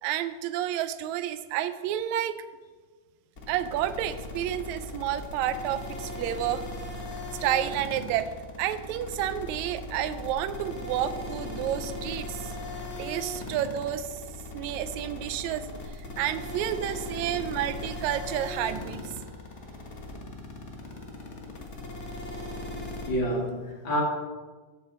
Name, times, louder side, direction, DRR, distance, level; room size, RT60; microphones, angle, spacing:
voice 1, 0.0-2.4 3.5-6.6 7.4-8.3 8.6-12.5 13.0-14.2 14.5-15.6 15.9-19.0, right 11 dB, 80° right, 11 dB, 1.7 m, -30 dB
sound 1, 3.4-23.1, left 2 dB, 85° left, 0.6 m, -38 dB
voice 2, 22.7-24.0, equal, 40° left, -3 dB, 2.9 m, -30 dB
15.5 x 6.8 x 4.2 m, 1.4 s
omnidirectional pair, 3.8 m